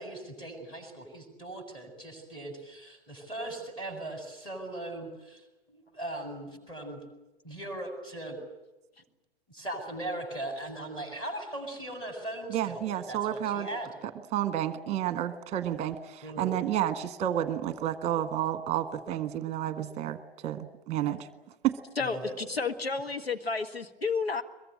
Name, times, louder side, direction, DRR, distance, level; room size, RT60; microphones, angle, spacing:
voice 1, 0.0-7.0 7.4-8.4 9.5-13.9 16.2-16.6 22.0-22.3, right 1 dB, 15° left, 6 dB, 7.4 m, -39 dB
voice 2, 12.5-13.7 14.0-21.3 21.6-21.8, right 11 dB, 20° right, 11 dB, 1.5 m, -31 dB
voice 3, 22.0-24.4, left 4 dB, 85° left, 5 dB, 1.7 m, -31 dB
23.0 x 22.5 x 9.0 m, 1.0 s
figure-of-eight pair, 110°, 30 cm